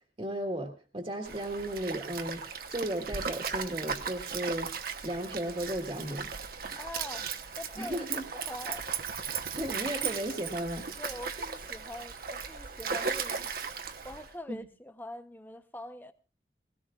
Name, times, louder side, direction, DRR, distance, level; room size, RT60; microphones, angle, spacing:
voice 1, 0.2-6.3 7.8-8.2 9.5-10.9 14.5-14.6, right 1 dB, 30° right, 1.5 m, -35 dB
Stream, 1.2-14.3, right 6 dB, 55° right, 1.0 m, -37 dB
voice 2, 6.8-8.1 8.3-8.9 11.0-13.7 14.0-16.1, left 1 dB, 10° left, 0.8 m, -44 dB
20.5 x 17.0 x 2.4 m
head